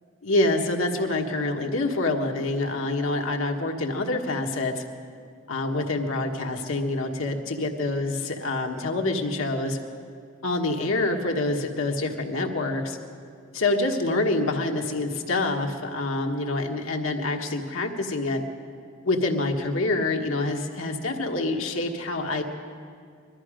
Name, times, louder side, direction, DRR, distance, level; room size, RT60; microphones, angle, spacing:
voice 1, 0.2-4.8 5.5-9.8 10.4-13.0 13.5-18.4 19.0-22.4, left 2 dB, 85° left, 2 dB, 1.4 m, -26 dB
21.0 x 13.5 x 5.0 m, 2.3 s
head